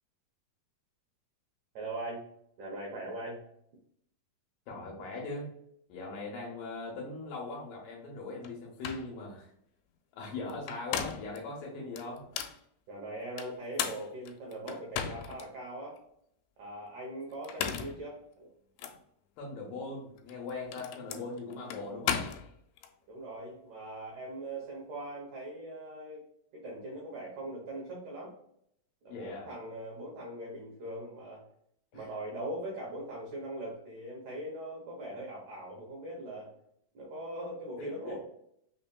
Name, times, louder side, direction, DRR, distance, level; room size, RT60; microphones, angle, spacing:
voice 1, 1.7-2.2 2.6-3.4 12.9-16.0 16.6-18.5 23.1-26.2 26.5-28.3 29.0-31.4 31.9-36.5 36.9-38.2, right 1 dB, 80° right, -2 dB, 1.6 m, -41 dB
voice 2, 4.7-5.5 5.9-9.5 10.1-12.2 19.4-22.3 29.1-29.5 31.9-32.1 37.8-38.2, left 3 dB, 75° left, -1 dB, 2.3 m, -40 dB
sound 1, 8.4-8.5 8.8-9.1 10.5-11.4 12.0-12.6 13.4-15.5 16.0-16.1 17.3-18.0 18.8-19.0 20.2-22.9, left 8 dB, 90° left, 2.5 m, -36 dB
5.7 x 2.7 x 2.2 m, 0.71 s
omnidirectional pair, 4.4 m